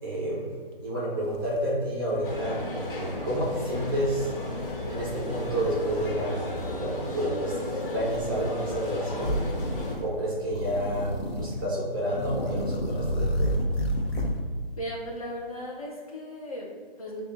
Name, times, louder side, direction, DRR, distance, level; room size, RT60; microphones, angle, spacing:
voice 1, 0.0-0.5 0.8-2.6 2.9-4.3 4.9-9.4 10.0-13.6, right 1 dB, 20° right, -5 dB, 0.7 m, -30 dB
sound 1, 0.8-0.9 1.2-2.4 2.7-3.2 3.7-4.2 4.6-6.2 6.5-7.0 8.1-8.8 9.2-10.1 10.5-11.7 12.1-14.4, equal, 80° left, 0.7 m, -32 dB
sound 2, 2.2-10.0, left 1 dB, 60° left, 1.2 m, -34 dB
voice 2, 14.8-17.2, equal, 35° left, -4 dB, 0.6 m, -37 dB
6.8 x 2.4 x 2.5 m, 1.5 s
figure-of-eight pair, 160°, 30 cm